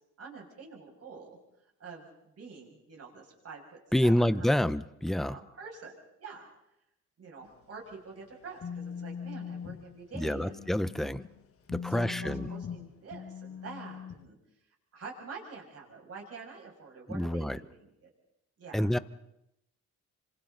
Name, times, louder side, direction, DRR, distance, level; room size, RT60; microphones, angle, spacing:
voice 1, 0.2-1.4 1.8-4.7 5.1-6.5 7.2-10.6 10.9-11.1 11.8-14.4 14.9-18.1 18.6-19.0, right 4 dB, 50° right, -1 dB, 6.8 m, -47 dB
voice 2, 3.9-5.4 10.1-11.2 11.7-12.5 17.1-17.6 18.7-19.0, left 1 dB, ahead, 15 dB, 0.7 m, -28 dB
sound 1, 7.5-11.4 11.7-14.2, left 6 dB, 50° left, 1.5 m, -41 dB
27.5 x 26.0 x 4.0 m, 0.83 s
cardioid pair, 90°, 30 cm